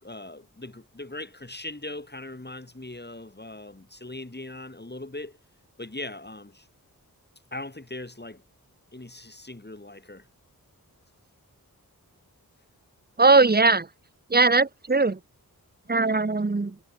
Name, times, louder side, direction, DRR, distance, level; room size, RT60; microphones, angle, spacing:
voice 1, 0.0-5.4 5.8-6.7 7.5-8.4 8.9-10.2, left 2 dB, 25° left, 5.5 m, -40 dB
voice 2, 13.2-13.9 14.3-15.2 15.9-16.8, right 3 dB, 25° right, 1.1 m, -20 dB
wide cardioid pair, 50°, 37 cm